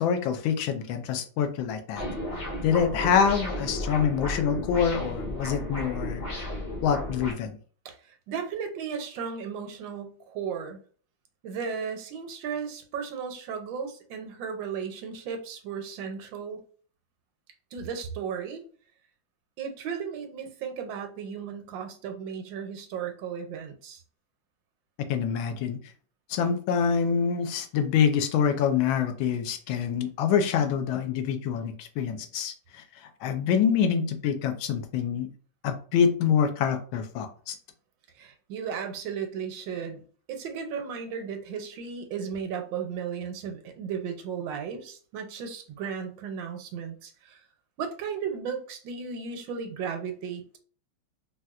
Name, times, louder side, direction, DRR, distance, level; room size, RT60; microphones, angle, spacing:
voice 1, 0.0-2.0 2.6-6.4 6.8-7.5 25.1-25.8 26.3-32.5 33.2-35.3 35.6-37.5, left 7 dB, 90° left, 6 dB, 1.3 m, -26 dB
sound 1, 2.0-7.3, left 1 dB, 35° left, 0.7 m, -34 dB
voice 2, 8.3-10.8 11.4-16.6 17.7-18.6 19.6-24.0 38.2-40.0 40.3-47.4 47.8-50.6, right 6 dB, 80° right, 5 dB, 1.3 m, -35 dB
4.1 x 2.2 x 2.3 m, 0.43 s
omnidirectional pair, 2.1 m